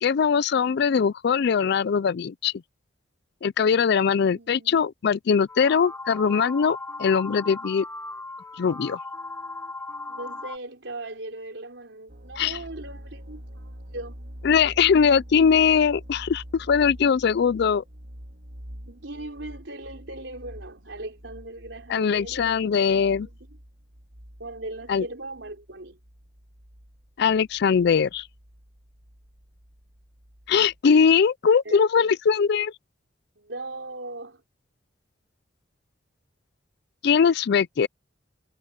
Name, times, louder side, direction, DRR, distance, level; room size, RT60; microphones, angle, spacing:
voice 1, 0.0-2.5 3.4-7.9 8.6-9.0 12.4-12.6 14.4-17.8 21.9-23.3 24.9-25.0 27.2-28.3 30.5-32.7 37.0-37.9, left 6 dB, 60° left, 0.4 m, -21 dB
voice 2, 4.2-4.9 10.1-14.2 18.9-22.6 23.2-23.4 24.4-26.0 31.6-32.1 33.4-34.4, right 2 dB, 80° right, 4.1 m, -39 dB
sound 1, 5.5-10.6, left 2 dB, 15° left, 3.1 m, -37 dB
sound 2, 12.1-30.8, equal, 60° right, 3.0 m, -45 dB
head